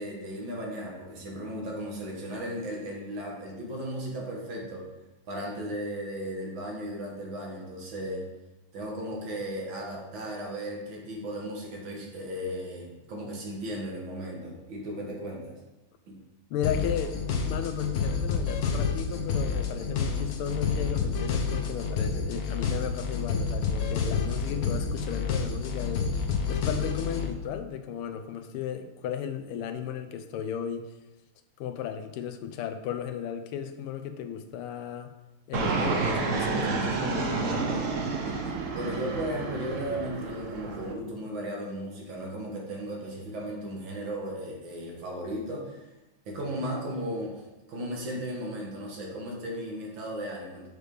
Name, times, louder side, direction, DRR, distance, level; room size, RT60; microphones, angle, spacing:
voice 1, 0.0-4.9 5.3-8.3 8.7-15.6 16.1-16.2 38.7-45.9 46.3-50.7, equal, 65° right, -1 dB, 2.0 m, -36 dB
voice 2, 16.5-26.1 26.5-30.9 31.6-35.1 35.5-37.8, left 9 dB, 85° left, 7 dB, 1.5 m, -35 dB
sound 1, 16.6-27.3, left 5 dB, 60° left, 1.0 m, -29 dB
Fixed-wing aircraft airplane, 35.5-40.9, right 4 dB, 85° right, 0.6 m, -30 dB
6.6 x 6.4 x 3.3 m, 1.0 s
omnidirectional pair, 2.4 m